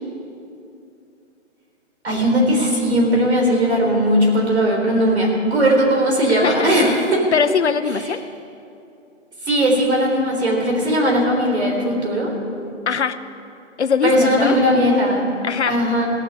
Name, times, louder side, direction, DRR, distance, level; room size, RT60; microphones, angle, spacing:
voice 1, 2.0-7.2 9.4-12.3 14.0-15.3 15.7-16.1, equal, 55° right, 0 dB, 3.8 m, -18 dB
voice 2, 6.4-6.9 7.3-8.2 12.9-13.2 13.8-14.6 15.4-15.8, left 6 dB, 60° left, 10 dB, 0.7 m, -21 dB
17.0 x 7.5 x 9.8 m, 2.7 s
hypercardioid pair, 180°, 38 cm